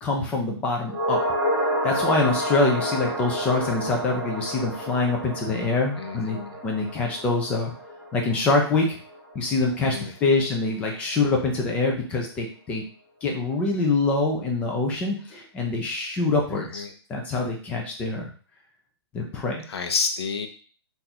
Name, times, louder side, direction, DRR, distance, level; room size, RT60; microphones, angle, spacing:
voice 1, 0.0-1.2 1.8-6.4 6.6-7.7 8.1-9.0 9.3-12.9 13.2-16.8 17.1-18.3 19.1-19.6, left 3 dB, 10° left, 1 dB, 0.4 m, -25 dB
sound 1, 0.9-9.4 9.6-9.7, equal, 20° right, 1.6 m, -30 dB
voice 2, 6.0-6.6 9.8-10.5 16.5-16.9 19.7-20.5, left 5 dB, 70° left, 6 dB, 0.7 m, -30 dB
3.7 x 2.6 x 2.8 m, 0.42 s
hypercardioid pair, 165°, 14 cm